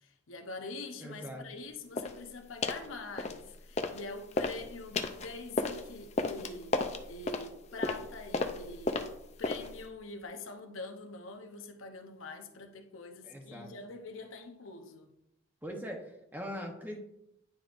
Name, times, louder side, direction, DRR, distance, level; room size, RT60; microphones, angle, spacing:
voice 1, 0.0-6.7 7.1-9.0 9.4-15.1, left 3 dB, 85° left, 0.8 m, -44 dB
voice 2, 1.0-1.5 13.2-13.7 15.6-17.0, equal, 10° right, 0.9 m, -41 dB
sound 1, 1.9-2.2 2.6-2.9 3.2-4.0 4.3-9.8, left 3 dB, 35° left, 0.5 m, -34 dB
9.3 x 5.1 x 2.5 m
head